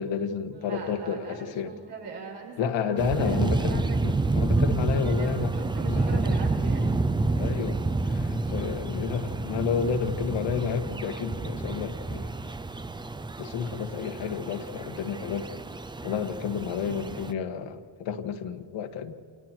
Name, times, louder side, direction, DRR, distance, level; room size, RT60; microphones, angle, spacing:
voice 1, 0.0-1.7 2.6-5.5 5.9-6.2 7.4-12.3 13.4-15.5 16.0-19.1, left 7 dB, 90° left, 6 dB, 1.8 m, -31 dB
voice 2, 0.5-4.3 5.0-6.9 17.0-17.5, right 4 dB, 80° right, -3 dB, 7.4 m, -41 dB
sound 1, 3.0-17.3, right 3 dB, 10° right, 0.5 m, -29 dB
29.0 x 28.0 x 4.6 m, 2.4 s
cardioid pair, 150°, 43 cm